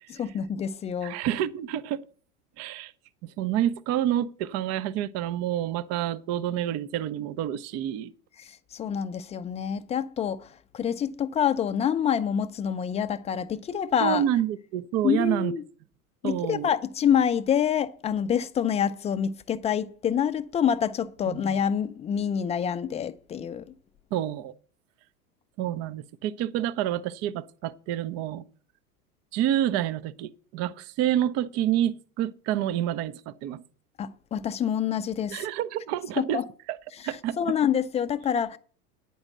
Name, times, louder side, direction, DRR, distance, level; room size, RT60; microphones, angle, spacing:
voice 1, 0.1-1.2 8.4-10.5 10.7-14.2 15.0-15.6 16.2-23.7 34.0-35.4 36.2-36.4 37.0-38.6, left 8 dB, 15° left, 0.5 m, -27 dB
voice 2, 1.0-2.0 2.6-2.9 3.2-8.1 14.0-15.5 16.2-16.7 21.3-21.4 24.1-24.5 25.6-28.4 29.3-33.6 35.3-36.4 36.7-36.8 37.0-37.6, right 11 dB, 35° right, 0.6 m, -28 dB
9.6 x 5.4 x 7.7 m
figure-of-eight pair, 85°, 45 cm